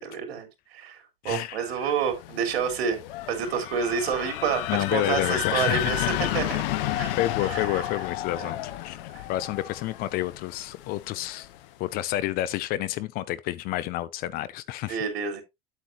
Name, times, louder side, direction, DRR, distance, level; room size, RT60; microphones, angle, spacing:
voice 1, 0.0-3.0 3.3-4.6 4.9-6.6 6.9-7.1 7.5-7.8 8.4-8.5 9.1-9.3 14.9-15.4, right 7 dB, 80° right, 3.6 m, -29 dB
voice 2, 1.2-1.6 4.7-6.3 7.2-9.0 9.3-11.5 11.8-15.0, left 15 dB, 30° left, 0.4 m, -29 dB
sound 1, 1.8-11.7, left 14 dB, 60° left, 1.0 m, -32 dB
9.0 x 8.0 x 2.9 m
supercardioid pair, 155°, 31 cm